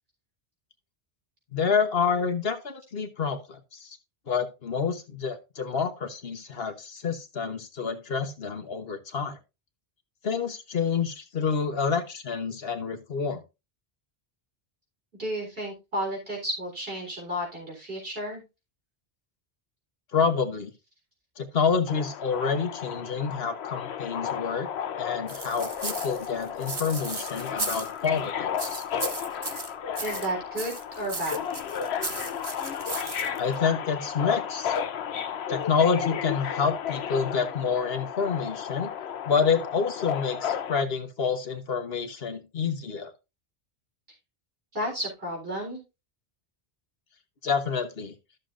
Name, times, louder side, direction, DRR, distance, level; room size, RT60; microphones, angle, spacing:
voice 1, 1.5-4.0 4.3-9.4 10.2-13.4 20.1-20.7 21.4-24.7 25.0-28.8 33.4-34.7 35.5-38.9 39.3-43.1 47.4-48.1, left 6 dB, 65° left, 7 dB, 1.4 m, -28 dB
voice 2, 15.2-18.4 30.0-31.5 44.7-45.8, equal, 60° right, -1 dB, 4.3 m, -32 dB
Subway metro underground, 21.9-40.8, left 8 dB, 85° left, 1.0 m, -33 dB
sound 1, 25.3-28.2 28.6-30.3 30.6-33.5, right 3 dB, 25° right, 0.7 m, -36 dB
13.5 x 6.6 x 2.6 m, 0.27 s
omnidirectional pair, 1.1 m